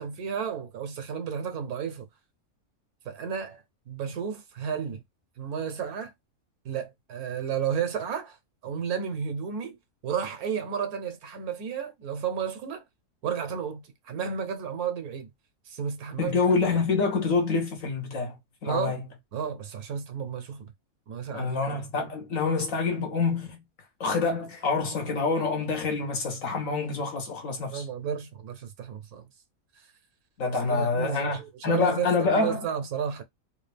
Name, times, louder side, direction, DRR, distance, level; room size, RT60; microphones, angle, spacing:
voice 1, 0.0-2.1 3.0-5.0 5.4-6.1 6.6-8.4 8.6-9.8 10.0-12.8 13.2-15.3 15.7-16.4 18.6-19.0 19.3-20.7 21.1-21.6 27.7-29.3 29.8-29.9 30.7-33.2, right 7 dB, 80° right, 1.4 m, -32 dB
voice 2, 16.2-18.3 18.6-19.0 21.3-23.6 24.0-27.8 30.4-31.4 31.6-32.6, left 4 dB, 65° left, 1.5 m, -26 dB
3.5 x 2.5 x 3.3 m
omnidirectional pair, 1.5 m